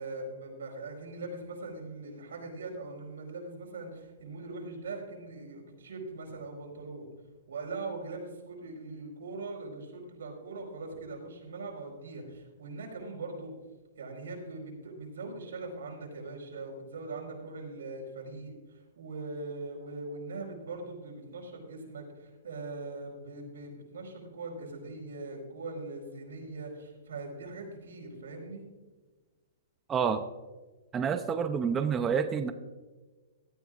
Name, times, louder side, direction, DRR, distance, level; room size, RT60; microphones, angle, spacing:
voice 1, 0.0-7.1 7.5-13.5 14.0-28.6, right 3 dB, 90° right, 0 dB, 4.6 m, -41 dB
voice 2, 29.9-30.2 30.9-32.5, right 6 dB, 15° right, 8 dB, 0.5 m, -28 dB
17.0 x 12.5 x 2.5 m, 1.3 s
hypercardioid pair, 160°, 0 cm